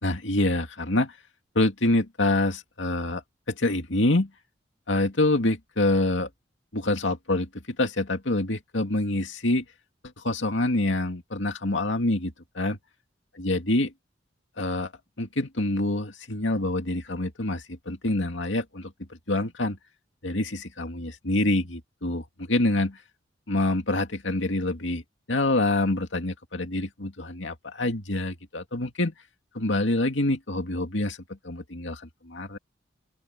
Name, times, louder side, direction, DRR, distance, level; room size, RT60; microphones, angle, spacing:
voice 1, 0.0-1.2 1.5-3.2 3.5-4.3 4.9-6.3 6.7-9.6 10.2-12.8 13.4-13.9 14.6-14.9 15.2-18.9 19.3-19.8 20.2-23.0 23.5-25.0 25.3-29.1 29.5-31.2 31.4-32.6, left 2 dB, 75° left, 2.5 m, -26 dB
open air
head